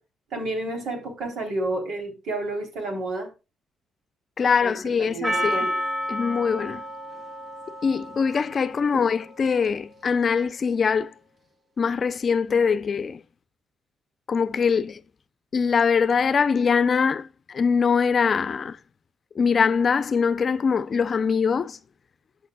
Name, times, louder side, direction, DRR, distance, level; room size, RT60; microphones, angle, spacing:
voice 1, 0.3-3.3 4.6-5.8, right 2 dB, 75° right, 3.7 m, -30 dB
voice 2, 4.4-5.7 6.1-6.8 7.8-11.1 11.8-13.2 14.3-15.0 15.5-18.8 19.3-21.8, left 6 dB, 50° left, 0.6 m, -23 dB
Percussion, 5.2-9.5, equal, 45° right, 2.4 m, -31 dB
14.0 x 6.9 x 2.4 m
supercardioid pair, 65°, 0 cm